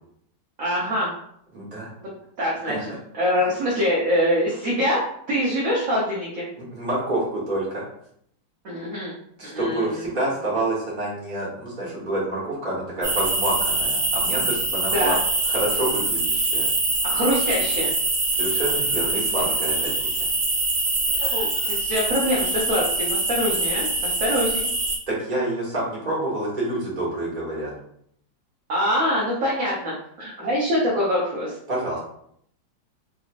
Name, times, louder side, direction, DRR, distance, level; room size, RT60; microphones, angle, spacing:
voice 1, 0.6-1.1 2.4-2.7 3.2-5.0 5.3-6.4 8.6-9.1 9.4-9.9 14.9-15.2 17.0-17.9 21.1-24.7 28.7-31.5, equal, 60° right, -6 dB, 1.1 m, -24 dB
voice 2, 1.5-1.9 2.7-2.8 6.6-7.8 9.4-15.1 15.4-16.7 18.3-20.3 25.1-27.7 31.7-32.0, right 1 dB, 30° right, -7 dB, 1.3 m, -28 dB
sound 1, 13.0-25.0, right 2 dB, 85° right, 1.6 m, -24 dB
3.9 x 2.8 x 2.5 m, 0.68 s
omnidirectional pair, 1.9 m